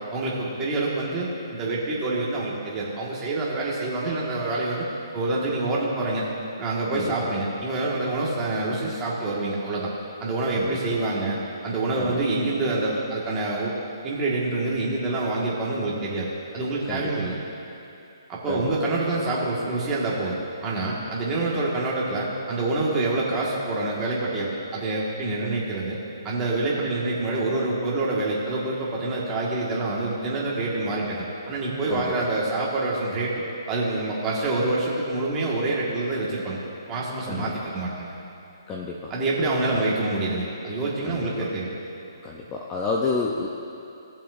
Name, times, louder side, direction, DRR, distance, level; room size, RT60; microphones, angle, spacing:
voice 1, 0.1-4.8 5.1-6.3 6.6-9.9 10.2-11.4 11.6-13.7 14.0-17.3 18.3-20.4 20.6-26.0 26.2-36.6 36.8-38.1 39.1-41.7, right 2 dB, 15° right, -5 dB, 1.6 m, -26 dB
voice 2, 6.9-7.3 10.5-10.7 12.0-12.2 16.9-17.3 18.5-18.9 31.9-32.1 37.3-37.6 38.7-39.1 39.7-39.8 41.0-41.3 42.2-43.5, left 4 dB, 15° left, -1 dB, 0.5 m, -30 dB
18.0 x 7.1 x 2.5 m, 2.8 s
hypercardioid pair, 165°, 2 cm